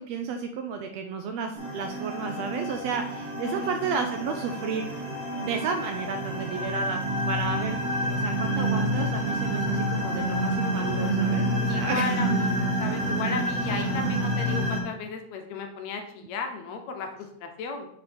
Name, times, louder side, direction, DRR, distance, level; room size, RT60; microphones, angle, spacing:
voice 1, 0.0-5.1 5.4-12.3, right 5 dB, 75° right, 5 dB, 1.6 m, -32 dB
sound 1, 1.5-14.8, right 1 dB, 25° right, 1.6 m, -28 dB
voice 2, 11.7-17.9, left 5 dB, 75° left, 4 dB, 1.9 m, -35 dB
7.1 x 4.9 x 4.3 m, 0.72 s
omnidirectional pair, 3.4 m